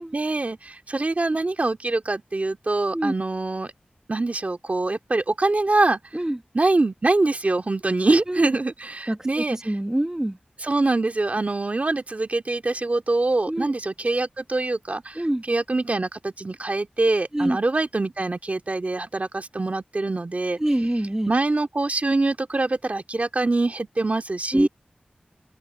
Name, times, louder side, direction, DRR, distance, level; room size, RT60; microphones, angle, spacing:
voice 1, 0.1-3.7 4.1-6.0 6.5-9.6 10.6-15.2 15.5-20.6 21.3-24.7, right 2 dB, 50° right, 2.7 m, -24 dB
voice 2, 9.1-10.4 13.5-13.7 15.1-15.4 17.3-17.6 20.6-21.3 24.5-24.7, right 1 dB, 20° right, 1.4 m, -25 dB
open air
wide cardioid pair, 70°, 3 cm